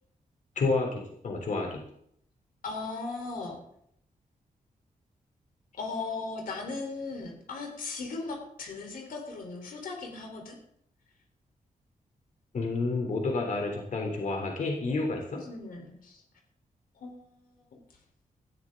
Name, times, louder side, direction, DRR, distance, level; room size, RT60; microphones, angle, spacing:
voice 1, 0.6-1.8 12.5-15.4, left 3 dB, 65° left, 1 dB, 3.4 m, -30 dB
voice 2, 2.6-3.6 5.7-10.6 15.3-16.2 17.0-17.4 17.7-17.8, left 3 dB, 85° left, 2 dB, 3.9 m, -37 dB
19.0 x 13.5 x 3.8 m, 0.70 s
wide cardioid pair, 150°, 14 cm